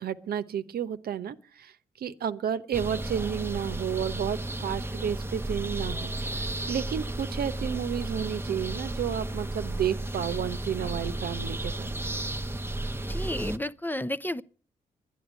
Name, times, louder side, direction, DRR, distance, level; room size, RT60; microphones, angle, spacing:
voice 1, 0.0-1.7 2.0-11.9, right 9 dB, 65° right, 0.9 m, -31 dB
sound 1, 2.7-13.6, right 1 dB, 15° right, 0.9 m, -33 dB
voice 2, 13.0-14.4, left 1 dB, 10° left, 0.7 m, -32 dB
12.0 x 10.5 x 8.1 m
hypercardioid pair, 45°, 17 cm